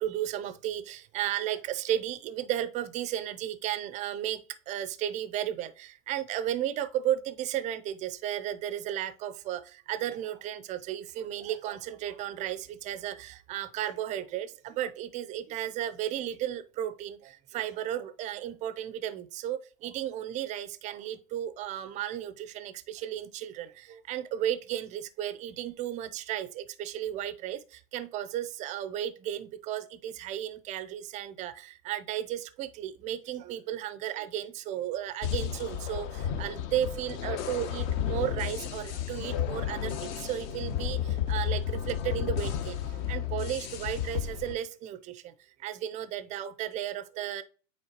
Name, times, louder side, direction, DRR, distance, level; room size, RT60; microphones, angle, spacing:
voice 1, 0.0-4.4 4.7-45.3 45.6-47.4, right 11 dB, 20° right, 0.3 m, -34 dB
sound 1, 35.2-44.5, left 9 dB, 55° left, 0.9 m, -32 dB
8.7 x 4.4 x 2.9 m
hypercardioid pair, 110°, 42 cm